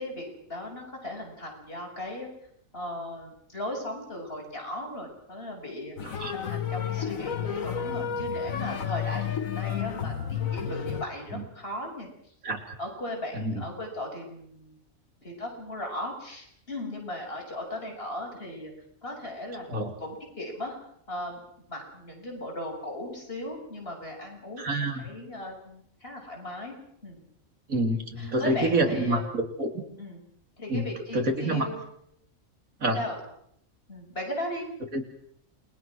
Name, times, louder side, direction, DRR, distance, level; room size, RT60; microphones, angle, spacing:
voice 1, 0.0-2.3 2.7-6.0 6.3-12.1 12.5-14.8 15.2-18.7 19.0-20.8 21.1-21.4 21.7-26.7 27.0-27.2 28.2-29.2 30.0-30.2 30.6-31.7 32.9-33.2 33.9-34.7, left 1 dB, 45° left, 1 dB, 7.4 m, -37 dB
sound 1, 6.0-11.0, left 8 dB, 75° left, 1.8 m, -31 dB
voice 2, 24.6-25.1 27.7-29.8 30.7-30.9 31.1-31.7 32.8-33.0 34.9-35.0, right 1 dB, 80° right, 4 dB, 3.6 m, -27 dB
29.0 x 21.5 x 6.2 m, 0.70 s
omnidirectional pair, 1.4 m